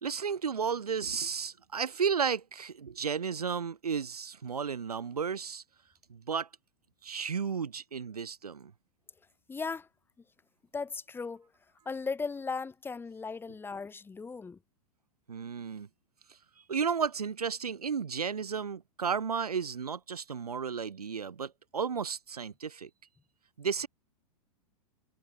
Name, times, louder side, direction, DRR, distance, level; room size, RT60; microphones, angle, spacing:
voice 1, 0.0-5.6 6.1-6.5 7.0-8.7 15.3-15.9 16.7-22.9 23.6-23.9, right 6 dB, 75° right, 1.7 m, -33 dB
voice 2, 9.5-9.9 10.7-11.5 11.9-14.6, left 4 dB, 10° left, 2.1 m, -37 dB
figure-of-eight pair, 100°, 20 cm